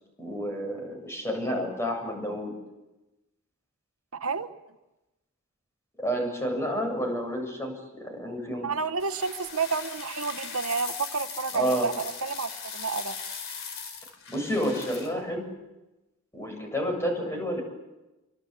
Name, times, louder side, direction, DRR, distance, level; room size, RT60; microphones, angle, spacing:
voice 1, 0.2-2.5 6.0-8.7 11.5-11.9 14.3-15.5 16.3-17.6, equal, 15° left, 2 dB, 7.7 m, -30 dB
voice 2, 4.1-4.5 8.6-13.2, right 5 dB, 90° right, 9 dB, 1.2 m, -30 dB
sound 1, 9.0-15.1, left 6 dB, 60° left, 4.7 m, -39 dB
26.0 x 25.0 x 8.4 m, 1.0 s
head